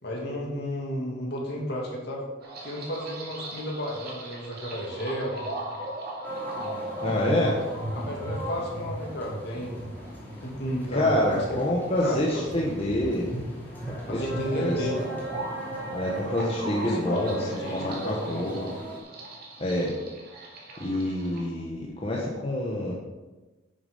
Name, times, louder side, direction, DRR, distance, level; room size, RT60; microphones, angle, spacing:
voice 1, 0.0-2.2 2.6-5.5 6.6-6.8 7.4-7.5 8.0-9.8 10.4-11.4 12.0-12.6 14.1-15.1 16.8-18.5, equal, 55° left, -2 dB, 2.5 m, -33 dB
sound 1, 2.4-21.5, right 1 dB, 50° right, 2.3 m, -38 dB
sound 2, 6.2-19.0, right 1 dB, 10° left, 2.6 m, -39 dB
voice 2, 7.0-7.6 10.9-13.3 14.1-14.9 15.9-17.4 17.6-18.7 19.6-19.9 20.8-22.9, left 1 dB, 30° left, -4 dB, 1.3 m, -27 dB
9.7 x 6.9 x 5.6 m, 1.2 s
head